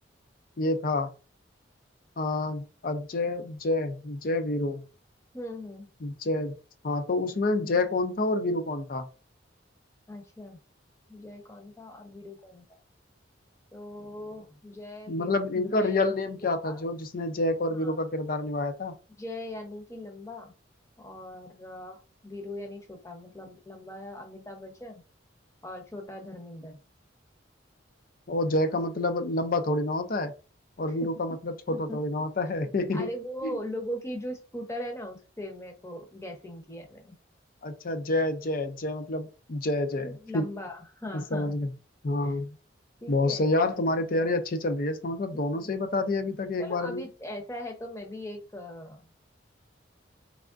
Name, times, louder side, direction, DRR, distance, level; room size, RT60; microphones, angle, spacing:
voice 1, 0.6-1.1 2.2-4.8 6.0-6.6 6.8-9.1 15.1-19.0 28.3-30.3 30.8-33.1 33.4-33.6 37.6-40.4 41.1-41.7 42.0-42.5 43.1-47.0, left 2 dB, 50° left, 0.5 m, -28 dB
voice 2, 5.3-5.9 10.1-10.6 11.1-12.6 13.7-15.4 15.8-16.1 16.4-16.8 17.7-18.0 19.2-20.5 21.0-25.0 25.6-26.8 31.0-31.1 31.7-32.0 32.9-37.2 40.0-41.5 42.2-42.3 43.0-43.5 45.3-45.7 46.6-49.1, left 1 dB, 15° left, 0.8 m, -40 dB
3.5 x 3.3 x 2.5 m
head